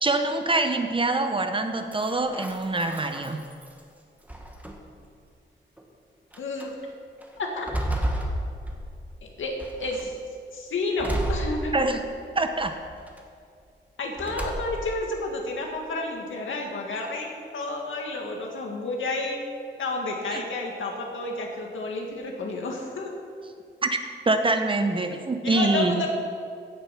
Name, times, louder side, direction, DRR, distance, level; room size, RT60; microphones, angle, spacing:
voice 1, 0.0-3.4 11.7-12.0 12.3-12.7 20.3-20.4 23.8-24.0 24.3-26.0, right 2 dB, 25° right, 6 dB, 0.9 m, -25 dB
sound 1, 1.9-3.8 4.3-5.0 5.8-5.9 6.3-6.7 7.2-9.2 9.6-10.1 11.0-12.1 12.6-13.2 14.2-15.0, right 1 dB, 10° right, 1.4 m, -32 dB
voice 2, 6.4-6.7 7.4-7.7 9.4-10.1 10.5-11.8 14.0-19.5 19.8-23.1 25.1-25.2 25.4-26.1, left 2 dB, 90° left, 0 dB, 2.1 m, -30 dB
16.0 x 7.0 x 6.0 m, 2.3 s
wide cardioid pair, 135°, 20 cm